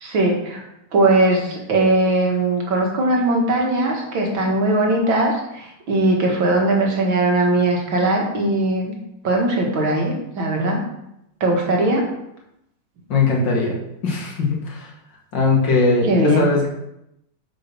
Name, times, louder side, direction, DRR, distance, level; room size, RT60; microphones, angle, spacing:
voice 1, 0.0-0.6 0.9-8.9 9.2-10.8 11.4-12.1 16.1-16.5, right 2 dB, 80° right, 0 dB, 2.7 m, -19 dB
voice 2, 13.1-13.7 14.0-14.9 15.3-16.7, left 3 dB, 65° left, -2 dB, 2.7 m, -19 dB
9.1 x 5.8 x 6.2 m, 0.82 s
omnidirectional pair, 2.1 m